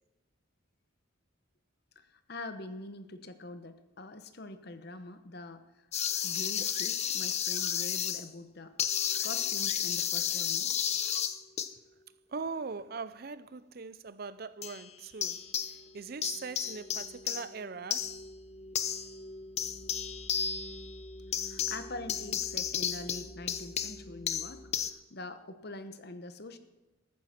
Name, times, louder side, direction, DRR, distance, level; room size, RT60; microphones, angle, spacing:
voice 1, 2.0-5.6 6.2-9.0 9.2-10.9 21.4-24.7 25.1-26.6, left 2 dB, 55° left, 1.0 m, -44 dB
sound 1, 5.9-8.3 8.8-11.7 14.6-14.9 15.2-16.0 16.2-24.9, left 8 dB, 35° left, 0.6 m, -33 dB
voice 2, 12.3-15.4 15.9-18.1, right 4 dB, 50° right, 0.5 m, -41 dB
14.0 x 9.3 x 5.9 m
head